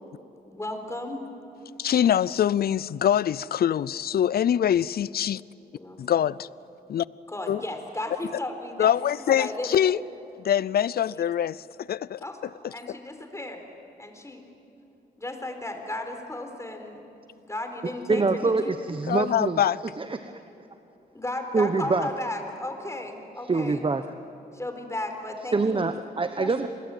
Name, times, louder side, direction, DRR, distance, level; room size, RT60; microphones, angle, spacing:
voice 1, 0.5-1.2 5.7-6.2 7.3-10.0 11.1-11.2 12.2-12.4 12.7-13.6 14.0-14.4 15.2-17.0 17.5-18.7 21.1-23.8 24.5-25.9 26.4-26.7, left 1 dB, 15° left, 4.0 m, -35 dB
voice 2, 1.8-5.4 6.0-6.5 6.9-7.1 7.5-7.6 8.8-10.0 10.4-12.2 12.6-12.7 19.1-19.8, left 10 dB, 65° left, 0.5 m, -24 dB
voice 3, 18.1-19.6 20.0-20.4 21.5-22.1 23.5-24.0 25.5-26.7, right 3 dB, 30° right, 1.1 m, -25 dB
29.0 x 21.5 x 9.1 m
cardioid pair, 80°, 17 cm